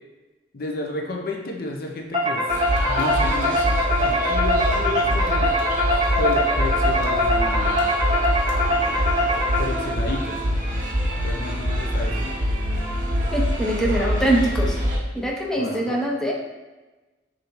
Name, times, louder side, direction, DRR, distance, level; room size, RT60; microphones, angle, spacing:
voice 1, 0.5-2.4 2.8-3.8 4.0-5.5 6.2-7.8 9.6-10.4 11.2-12.4 13.8-14.0 15.6-16.0, left 2 dB, 55° left, 1 dB, 0.6 m, -31 dB
sound 1, 2.1-10.0, equal, 25° right, 1.1 m, -23 dB
sound 2, 2.5-15.0, equal, 45° right, 0.9 m, -24 dB
voice 2, 13.3-14.8 15.1-16.3, right 1 dB, 5° left, -2 dB, 0.5 m, -23 dB
6.6 x 2.7 x 3.0 m, 1.2 s
head